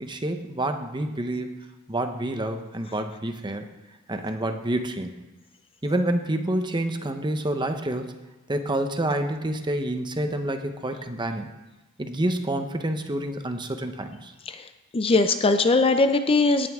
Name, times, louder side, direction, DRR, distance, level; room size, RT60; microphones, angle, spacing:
voice 1, 0.0-1.6 1.9-3.7 4.1-5.1 5.8-8.1 8.5-11.5 12.0-14.3, right 1 dB, 20° right, 6 dB, 0.9 m, -28 dB
voice 2, 14.9-16.7, left 3 dB, 25° left, 8 dB, 0.5 m, -20 dB
17.5 x 9.3 x 3.7 m, 1.1 s
head